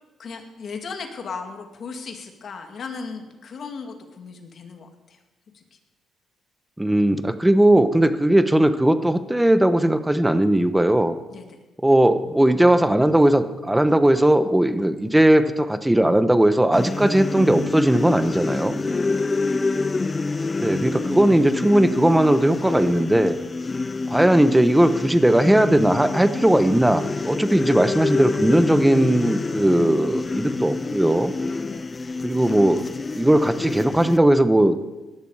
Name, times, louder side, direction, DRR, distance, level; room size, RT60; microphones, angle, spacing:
voice 1, 0.2-5.2 5.5-5.8 11.3-11.6 19.1-19.4 31.7-31.9, left 5 dB, 55° left, 5 dB, 2.2 m, -37 dB
voice 2, 6.8-11.2 11.8-18.8 20.6-23.4 24.1-31.3 32.2-32.9 33.1-34.8, right 1 dB, 10° right, 10 dB, 1.1 m, -18 dB
sound 1, 16.7-34.2, left 3 dB, 25° left, 0.5 m, -27 dB
17.5 x 11.5 x 4.9 m, 1.1 s
cardioid pair, 90°, 0 cm